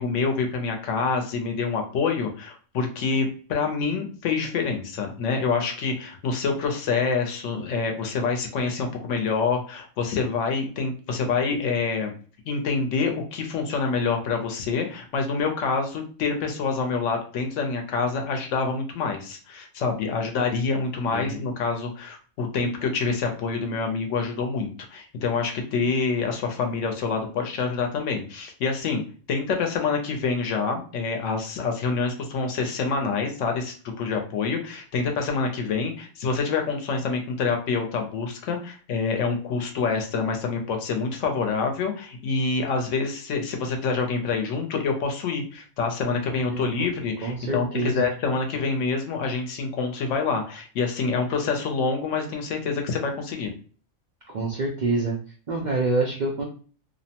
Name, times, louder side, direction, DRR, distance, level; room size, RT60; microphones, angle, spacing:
voice 1, 0.0-12.1 12.5-29.0 29.3-53.5, left 4 dB, 65° left, 3 dB, 0.9 m, -26 dB
voice 2, 46.5-46.9 47.2-48.0 54.3-55.2 55.5-56.5, right 2 dB, 80° right, -2 dB, 0.4 m, -26 dB
2.7 x 2.0 x 2.8 m, 0.41 s
omnidirectional pair, 1.4 m